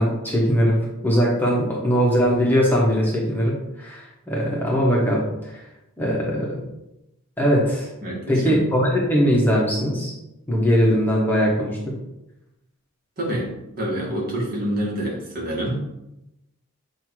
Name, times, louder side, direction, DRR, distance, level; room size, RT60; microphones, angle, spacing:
voice 1, 0.0-5.6 6.0-6.6 7.4-7.9 8.3-10.1 10.5-12.0, equal, 10° left, -4 dB, 1.2 m, -20 dB
voice 2, 8.0-8.6 13.2-15.8, right 1 dB, 45° right, -4 dB, 2.1 m, -27 dB
7.8 x 2.8 x 4.8 m, 0.90 s
head